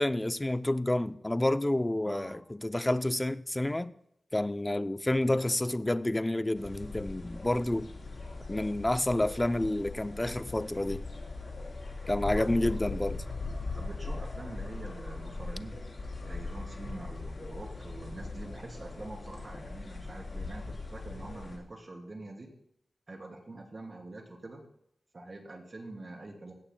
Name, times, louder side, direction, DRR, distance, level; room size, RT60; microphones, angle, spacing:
voice 1, 0.0-3.9 4.3-7.9 8.5-11.0 12.1-13.2, left 1 dB, 15° left, 0.4 m, -29 dB
voice 2, 2.0-2.4 12.3-12.5 13.8-15.8 16.2-22.5 23.1-24.6 25.1-26.5, right 2 dB, 40° right, 3.1 m, -45 dB
sound 1, 6.5-21.6, left 3 dB, 40° left, 3.7 m, -40 dB
17.0 x 16.0 x 2.2 m
wide cardioid pair, 100°, 0 cm